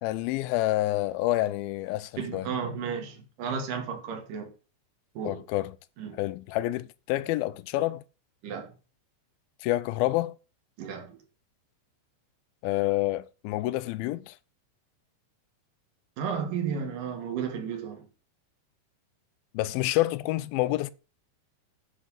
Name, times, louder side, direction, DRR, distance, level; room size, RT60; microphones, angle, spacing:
voice 1, 0.0-2.5 5.3-5.7 6.2-8.0 9.6-10.4 12.6-14.3 19.5-20.9, left 17 dB, 85° left, 2.4 m, -28 dB
voice 2, 2.2-4.5 5.1-5.4 6.0-6.2 8.4-8.7 10.8-11.2 16.2-18.1, right 6 dB, 65° right, 3.2 m, -33 dB
10.0 x 4.3 x 7.2 m
omnidirectional pair, 4.2 m